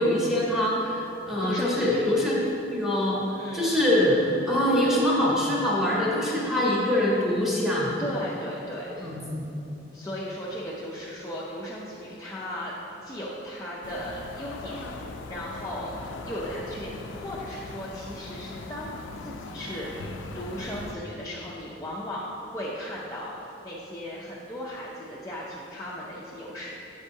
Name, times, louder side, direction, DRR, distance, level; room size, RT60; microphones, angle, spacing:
voice 1, 0.0-2.4 2.7-3.2 3.5-8.0 9.0-9.4, left 1 dB, ahead, -6 dB, 1.0 m, -24 dB
voice 2, 1.4-2.0 3.4-3.7 8.0-9.2 9.9-12.7 13.0-14.8 15.1-15.9 16.3-20.1 20.3-22.3 22.5-26.7, equal, 15° left, -7 dB, 0.5 m, -36 dB
sound 1, 13.8-21.0, left 3 dB, 85° left, 0.4 m, -40 dB
8.3 x 5.4 x 2.7 m, 2.9 s
head